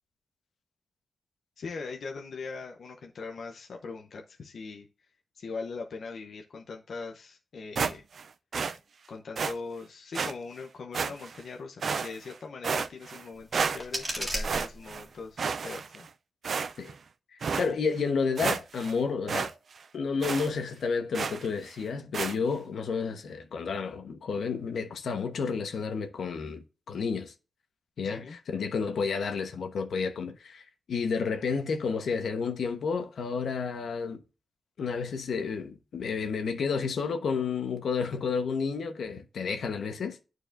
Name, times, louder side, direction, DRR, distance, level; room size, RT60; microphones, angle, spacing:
voice 1, 1.6-4.9 5.3-8.0 9.1-16.1 28.0-28.4, left 4 dB, 65° left, 0.8 m, -41 dB
sound 1, 7.8-8.3 8.5-8.8 9.4-9.5 10.1-10.3 10.9-11.4 11.8-12.3 12.6-13.2 13.5-14.1 14.4-15.0 15.4-16.1 16.4-17.0 17.4-17.7 18.1-18.2 18.4-18.9 19.3-19.5 19.8-19.9 20.2-20.5 21.1-21.5 22.1-22.4, right 5 dB, 55° right, 0.4 m, -31 dB
sound 2, 13.3-15.3, right 1 dB, 10° right, 1.8 m, -36 dB
voice 2, 17.3-19.5 19.9-27.3 28.0-34.2 34.8-40.2, left 5 dB, 90° left, 1.1 m, -31 dB
11.5 x 4.7 x 2.6 m
wide cardioid pair, 175°, 0 cm